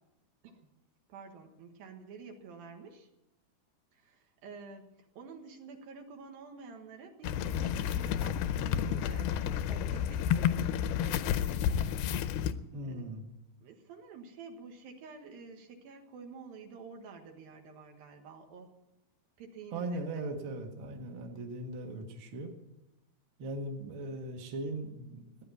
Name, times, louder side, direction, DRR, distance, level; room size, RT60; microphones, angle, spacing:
voice 1, 1.1-3.1 3.9-9.4 9.7-11.7 12.8-13.2 13.6-18.7 19.4-20.2, right 4 dB, 70° right, 3 dB, 3.3 m, -49 dB
sound 1, 7.2-12.5, left 9 dB, 80° left, 2.6 m, -30 dB
voice 2, 12.7-13.3 19.7-22.5 23.4-25.4, right 2 dB, 40° right, 2 dB, 1.9 m, -39 dB
16.5 x 10.0 x 8.4 m, 0.94 s
omnidirectional pair, 4.4 m